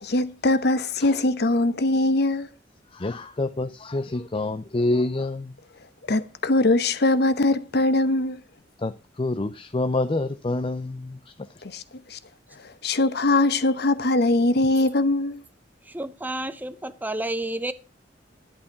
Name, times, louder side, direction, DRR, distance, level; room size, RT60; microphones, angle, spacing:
voice 1, 0.0-2.5 6.1-8.4 11.6-11.8 12.1-12.2 12.6-15.4, left 2 dB, 60° left, 1.0 m, -22 dB
voice 2, 2.9-5.5 8.8-11.2, left 2 dB, 30° left, 0.5 m, -27 dB
voice 3, 15.9-17.7, right 1 dB, 10° right, 0.7 m, -30 dB
11.5 x 8.7 x 5.8 m
head